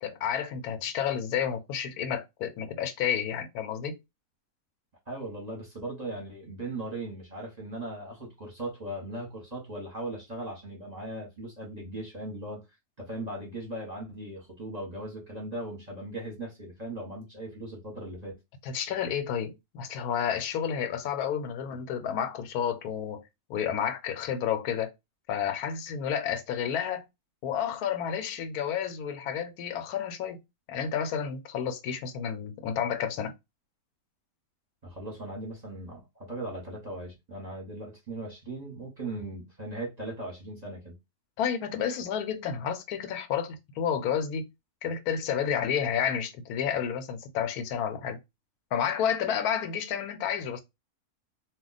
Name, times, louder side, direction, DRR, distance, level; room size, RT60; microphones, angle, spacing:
voice 1, 0.0-4.0 18.6-23.2 23.5-24.9 25.3-27.0 27.4-30.4 30.7-33.3 41.4-44.5 44.8-48.2 48.7-50.6, left 8 dB, 85° left, 1.1 m, -30 dB
voice 2, 5.1-12.6 13.0-18.4 34.8-40.9, right 1 dB, 30° right, 0.9 m, -38 dB
2.3 x 2.2 x 3.9 m
omnidirectional pair, 1.6 m